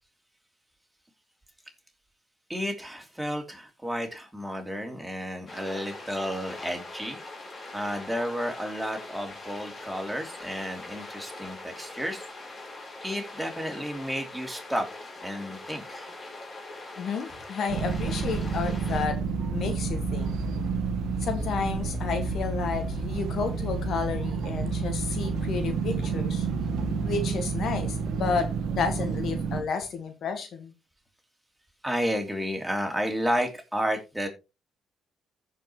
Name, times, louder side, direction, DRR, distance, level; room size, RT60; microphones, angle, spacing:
voice 1, 2.5-7.2 7.7-12.3 13.0-16.1 31.8-34.3, equal, 5° right, 3.0 m, -32 dB
sound 1, 5.5-19.1, left 2 dB, 40° left, 4.3 m, -42 dB
voice 2, 17.0-19.2 19.5-20.3 21.2-26.5 26.9-28.5 28.7-30.7, left 5 dB, 65° left, 1.7 m, -31 dB
sound 2, 17.7-29.6, right 4 dB, 80° right, 1.4 m, -29 dB
15.5 x 5.3 x 3.1 m
cardioid pair, 75°, 0 cm